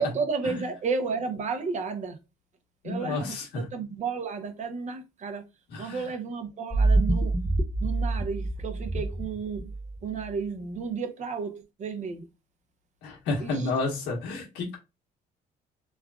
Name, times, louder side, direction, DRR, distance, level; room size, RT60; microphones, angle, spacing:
voice 1, 0.0-2.2 2.8-5.5 5.8-7.4 7.8-9.7 10.0-12.3 13.4-13.7, right 5 dB, 45° right, 0.7 m, -32 dB
voice 2, 2.8-3.7 5.7-6.1 13.0-14.8, left 3 dB, 90° left, 1.4 m, -31 dB
sound 1, 6.7-10.2, right 2 dB, ahead, 0.4 m, -26 dB
3.2 x 2.3 x 2.4 m
cardioid pair, 110°, 17 cm